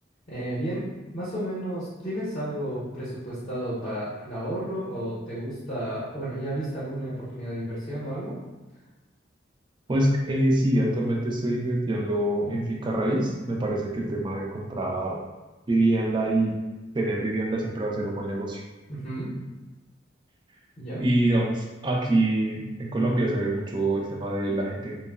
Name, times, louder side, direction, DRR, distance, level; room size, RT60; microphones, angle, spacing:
voice 1, 0.3-8.3 18.9-19.3 20.8-21.0, right 1 dB, 40° left, -10 dB, 0.7 m, -32 dB
voice 2, 9.9-15.2 15.7-16.6 16.9-18.6 21.0-25.0, right 1 dB, 25° right, -1 dB, 0.3 m, -25 dB
2.9 x 2.0 x 2.3 m, 1.2 s
head